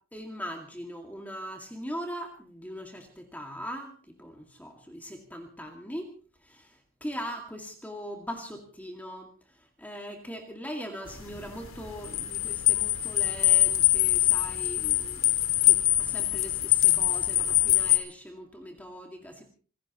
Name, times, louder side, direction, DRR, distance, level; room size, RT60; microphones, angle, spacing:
voice 1, 0.1-6.1 6.4-9.3 9.8-15.2 15.6-19.4, equal, 10° left, 3 dB, 2.1 m, -40 dB
sound 1, 11.1-18.0, left 15 dB, 80° left, 2.6 m, -24 dB
27.5 x 16.5 x 3.0 m, 0.39 s
head